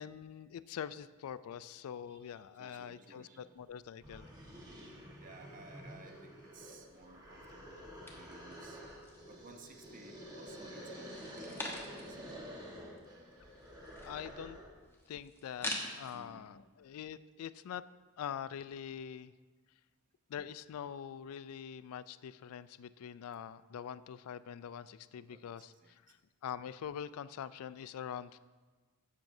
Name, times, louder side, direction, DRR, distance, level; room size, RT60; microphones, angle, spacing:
voice 1, 0.0-4.3 14.0-14.6 15.1-17.9 18.2-19.3 20.3-26.2 26.4-28.4, left 8 dB, 75° left, 16 dB, 0.3 m, -44 dB
voice 2, 1.7-3.5 5.2-8.8 9.3-12.5 16.1-16.4 25.2-26.0, right 3 dB, 35° right, 4 dB, 0.8 m, -57 dB
sound 1, 3.6-3.7 4.0-14.8, equal, 20° right, 1.3 m, -49 dB
sound 2, 8.1-9.4 9.8-10.4 11.0-12.3 12.6-12.7 12.9-16.2, left 1 dB, 10° left, 1.0 m, -44 dB
12.0 x 7.5 x 2.7 m, 1.4 s
head